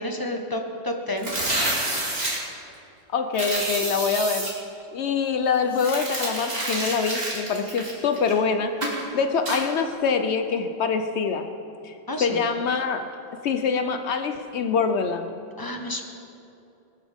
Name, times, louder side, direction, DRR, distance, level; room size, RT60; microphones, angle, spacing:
voice 1, 0.0-1.3 12.1-12.4 15.6-16.0, left 1 dB, 15° left, 3 dB, 1.0 m, -30 dB
sound 1, 1.2-2.4 3.3-4.5 5.7-8.4 8.8-9.0 9.5-9.6, right 1 dB, 30° right, 2.8 m, -28 dB
voice 2, 3.1-4.5 4.9-8.7 9.1-11.5 11.8-13.1 13.4-15.3, left 5 dB, 90° left, 7 dB, 0.6 m, -25 dB
20.0 x 13.0 x 3.6 m, 2.7 s
omnidirectional pair, 2.0 m